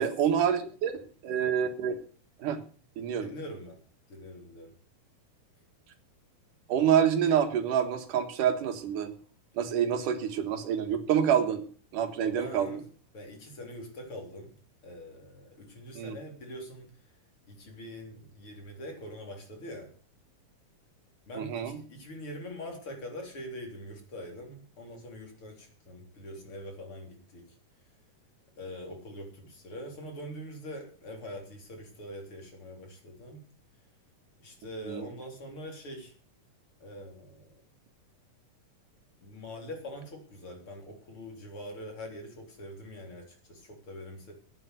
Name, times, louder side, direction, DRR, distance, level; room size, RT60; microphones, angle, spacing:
voice 1, 0.0-2.0 2.4-2.6 3.0-3.3 6.7-9.1 9.6-11.6 11.9-12.8 15.9-16.2 21.4-21.8 34.8-35.1, right 8 dB, 85° right, 7 dB, 3.1 m, -27 dB
voice 2, 3.2-3.8 4.1-4.7 12.2-12.8 13.1-14.5 14.8-16.9 17.5-19.9 21.3-27.5 28.6-33.4 34.4-36.1 36.8-37.6 39.2-44.3, equal, 45° left, 2 dB, 4.2 m, -43 dB
11.5 x 9.3 x 8.2 m, 0.43 s
omnidirectional pair, 3.6 m